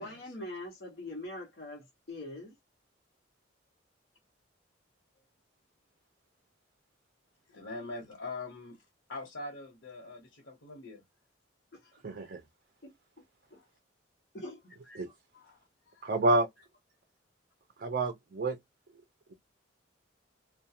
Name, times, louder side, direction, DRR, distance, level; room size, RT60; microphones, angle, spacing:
voice 1, 0.0-2.6 11.7-11.9 12.8-12.9 13.5-13.6 14.3-15.0, left 1 dB, 55° left, 0.8 m, -43 dB
voice 2, 7.5-8.8 9.1-11.0 13.5-13.7 15.3-15.6 15.9-16.1, left 2 dB, 80° left, 0.9 m, -43 dB
voice 3, 12.0-12.4 15.0-15.1 16.0-16.5 17.8-18.6, right 2 dB, 50° right, 0.5 m, -28 dB
2.3 x 2.2 x 2.7 m
head